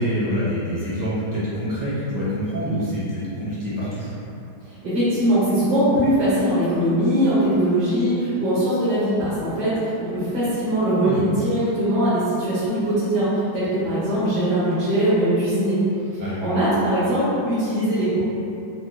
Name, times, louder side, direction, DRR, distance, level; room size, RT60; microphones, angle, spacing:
voice 1, 0.0-4.1 11.0-11.3 16.2-16.6, equal, 25° right, -11 dB, 0.4 m, -26 dB
voice 2, 4.8-15.8 16.1-18.2, right 1 dB, 80° right, -13 dB, 1.6 m, -21 dB
4.4 x 2.2 x 2.6 m, 2.7 s
omnidirectional pair, 1.8 m